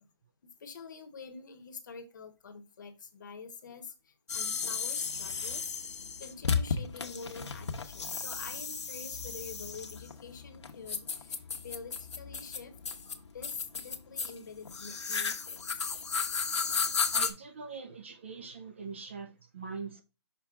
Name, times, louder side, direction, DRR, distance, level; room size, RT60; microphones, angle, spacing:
voice 1, 0.6-12.8 13.3-15.9, left 5 dB, 40° left, 1.0 m, -46 dB
sound 1, 4.3-17.3, left 5 dB, 75° left, 1.1 m, -34 dB
voice 2, 17.1-20.0, right 5 dB, 25° right, 0.4 m, -43 dB
6.1 x 4.2 x 3.6 m
hypercardioid pair, 170°, 15 cm